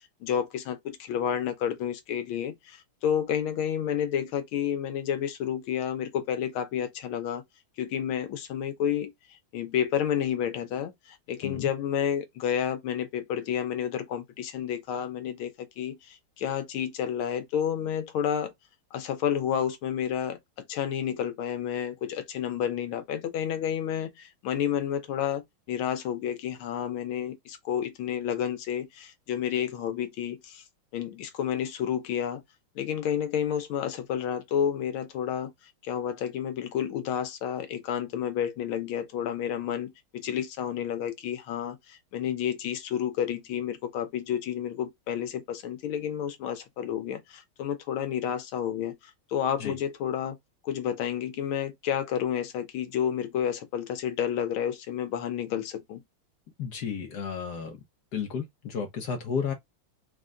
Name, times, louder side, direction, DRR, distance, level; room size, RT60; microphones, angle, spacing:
voice 1, 0.0-7.4 7.8-9.1 9.5-18.5 18.9-20.4 20.7-25.4 25.7-30.6 30.9-32.4 32.8-35.5 35.8-49.0 49.3-50.4 50.6-56.0, left 9 dB, 80° left, 1.6 m, -30 dB
voice 2, 56.6-57.8 58.1-59.5, left 6 dB, 60° left, 1.2 m, -32 dB
4.3 x 2.2 x 3.6 m
omnidirectional pair, 2.3 m